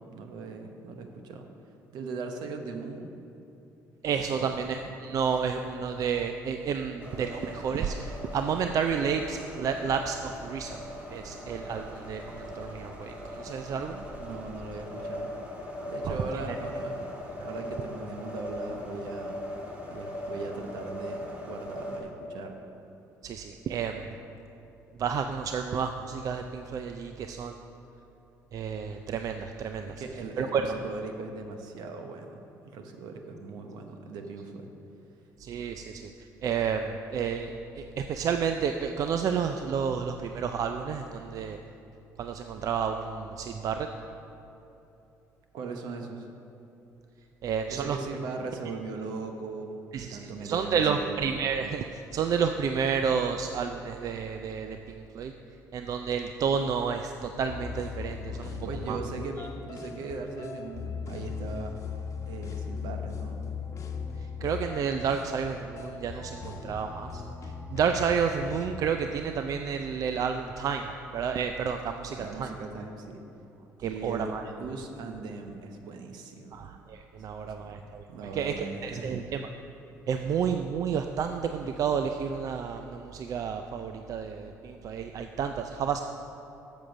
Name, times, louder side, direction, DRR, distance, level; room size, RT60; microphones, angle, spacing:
voice 1, 0.0-1.5 1.9-3.1 4.3-4.6 14.1-15.4 15.8-17.1 17.4-19.4 19.9-22.6 30.0-34.7 45.5-46.3 47.7-51.2 58.6-61.8 62.3-63.5 72.2-73.2 73.8-74.3 74.6-76.6 77.2-77.8 78.1-79.2, right 3 dB, 75° right, 5 dB, 1.0 m, -39 dB
voice 2, 4.0-10.8 11.1-14.0 16.0-16.1 23.2-24.1 25.0-27.5 28.5-29.9 30.4-30.7 35.4-35.9 36.4-41.6 42.2-43.9 47.4-48.0 49.9-55.3 55.7-59.0 64.4-67.2 67.7-72.5 73.8-74.4 76.5-78.0 78.3-79.5 80.1-86.0, right 6 dB, 55° right, 6 dB, 0.4 m, -30 dB
sound 1, 7.0-22.0, left 1 dB, 20° right, 1.9 m, -40 dB
sound 2, 57.5-68.7, left 5 dB, 45° left, 1.0 m, -38 dB
7.6 x 7.1 x 6.1 m, 2.9 s
supercardioid pair, 80°, 7 cm